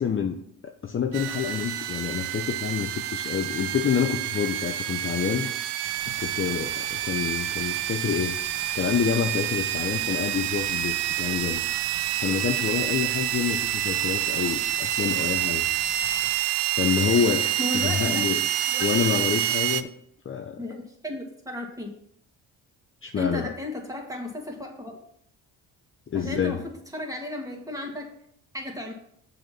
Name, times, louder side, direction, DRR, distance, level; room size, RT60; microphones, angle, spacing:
voice 1, 0.0-0.4 0.6-5.5 6.2-8.4 8.7-11.6 12.2-15.7 16.8-17.5 17.7-18.4 18.8-19.9 20.2-20.6 23.0-23.5 26.1-26.5, left 7 dB, 30° left, 5 dB, 0.7 m, -27 dB
sound 1, 1.1-19.8, right 12 dB, 70° right, 0.6 m, -28 dB
sound 2, 5.8-16.4, left 7 dB, 85° left, 0.9 m, -48 dB
voice 2, 17.6-18.3 18.7-19.2 20.6-21.9 23.2-25.0 26.1-28.1 28.5-28.9, left 1 dB, 10° right, 0 dB, 2.2 m, -34 dB
6.5 x 4.3 x 5.9 m, 0.69 s
supercardioid pair, 65°, 43 cm